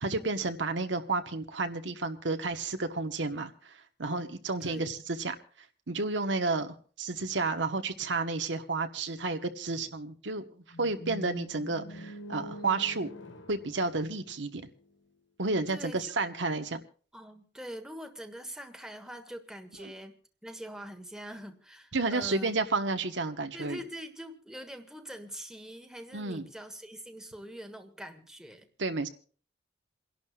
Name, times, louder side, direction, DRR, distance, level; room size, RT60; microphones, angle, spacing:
voice 1, 0.0-5.3 5.9-10.4 10.8-13.1 13.5-14.6 15.4-16.8 21.9-23.8 26.1-26.5 28.8-29.1, right 3 dB, 75° right, 7 dB, 1.2 m, -31 dB
voice 2, 4.6-4.9 15.7-16.2 17.1-20.1 20.4-22.6 23.5-28.7, equal, 5° right, 6 dB, 1.4 m, -44 dB
sound 1, 10.7-14.8, equal, 80° left, 1.5 m, -45 dB
28.5 x 11.5 x 2.4 m, 0.40 s
head